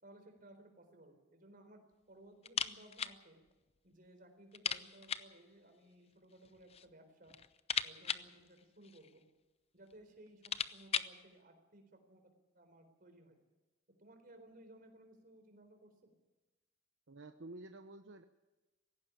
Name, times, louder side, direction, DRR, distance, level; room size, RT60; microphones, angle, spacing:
voice 1, 0.0-1.8 2.1-3.4 3.8-7.4 7.8-9.2 9.7-13.4 14.0-16.1, right 1 dB, 50° right, 6 dB, 4.2 m, -60 dB
sound 1, 2.4-3.2 3.5-3.6 3.9-4.0 4.5-5.4 6.3-6.9 7.2-9.2 9.9-10.0 10.3-11.2, left 7 dB, 35° left, 0.7 m, -39 dB
voice 2, 17.1-18.2, right 2 dB, 75° right, 7 dB, 0.9 m, -51 dB
17.5 x 15.5 x 9.9 m, 1.1 s
head